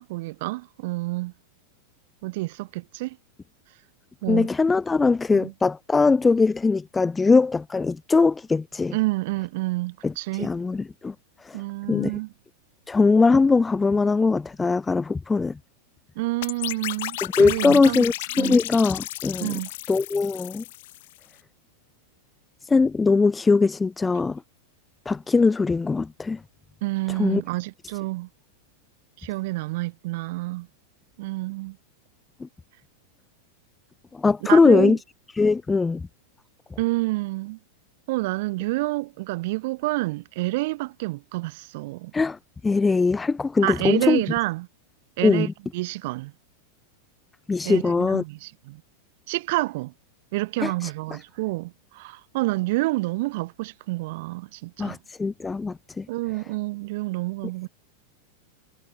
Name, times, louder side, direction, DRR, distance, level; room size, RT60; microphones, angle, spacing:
voice 1, 0.0-1.3 2.2-3.2 4.2-4.5 5.3-5.5 8.9-10.5 11.5-12.3 16.1-18.0 18.3-18.6 19.4-19.7 26.8-28.3 29.2-30.7 31.2-31.8 34.5-35.0 36.8-37.6 38.1-42.1 43.6-44.7 45.2-45.5 45.7-46.3 47.6-48.8 49.3-49.9 50.3-55.0 56.1-57.7, right 21 dB, 50° right, 6.5 m, -28 dB
voice 2, 4.3-8.9 10.0-10.1 10.4-11.1 11.4-11.6 11.9-12.1 12.9-15.5 17.4-19.5 19.9-20.6 22.7-24.4 25.0-26.4 27.2-27.4 34.2-35.0 35.4-36.0 42.1-42.4 42.6-44.2 45.2-45.5 47.5-48.2 50.6-50.9 54.8-56.0, left 4 dB, 10° left, 1.3 m, -21 dB
sound 1, 16.4-21.2, left 17 dB, 55° left, 3.1 m, -34 dB
figure-of-eight pair, 90°, 0 cm